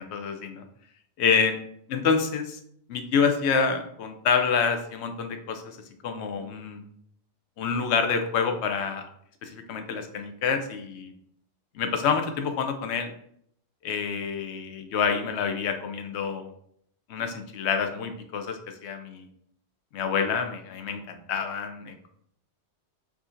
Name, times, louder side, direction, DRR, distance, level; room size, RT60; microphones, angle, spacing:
voice 1, 0.1-0.6 1.2-1.6 1.9-2.5 2.9-5.8 6.0-6.8 7.6-9.1 9.4-11.1 11.7-13.1 13.8-16.5 17.1-19.3 19.9-22.1, left 6 dB, 75° left, 7 dB, 0.8 m, -27 dB
4.8 x 2.6 x 2.5 m, 0.67 s
omnidirectional pair, 1.2 m